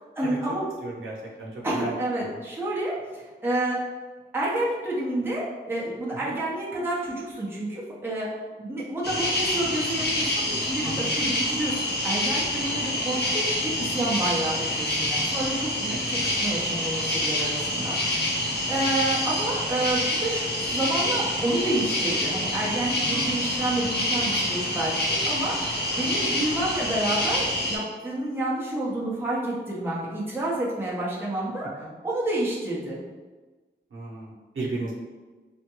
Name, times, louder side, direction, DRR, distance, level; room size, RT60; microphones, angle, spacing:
voice 1, 0.2-0.6 1.6-3.8 4.3-8.3 8.6-31.7 32.0-33.0, right 1 dB, 10° right, -6 dB, 0.8 m, -29 dB
voice 2, 0.8-1.9 2.3-2.4 6.1-6.3 10.8-11.2 15.9-16.3 17.5-17.9 23.1-23.3 31.8-31.9 33.9-34.9, right 2 dB, 90° right, -5 dB, 0.7 m, -35 dB
sound 1, 9.0-27.8, left 1 dB, 55° left, 0.8 m, -27 dB
3.3 x 2.1 x 3.0 m, 1.3 s
wide cardioid pair, 60°, 20 cm